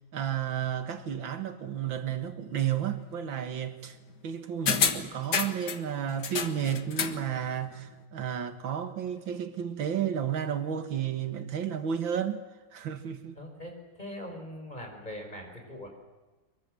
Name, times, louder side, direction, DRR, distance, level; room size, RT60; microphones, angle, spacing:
voice 1, 0.1-4.0 4.2-12.4 12.7-13.4, right 9 dB, 85° right, 2.4 m, -32 dB
sound 1, 4.7-5.8 6.2-7.2 7.6-7.7, left 7 dB, 60° left, 2.0 m, -29 dB
voice 2, 13.4-15.9, left 1 dB, 20° left, 5.7 m, -41 dB
25.0 x 23.5 x 7.8 m
omnidirectional pair, 2.0 m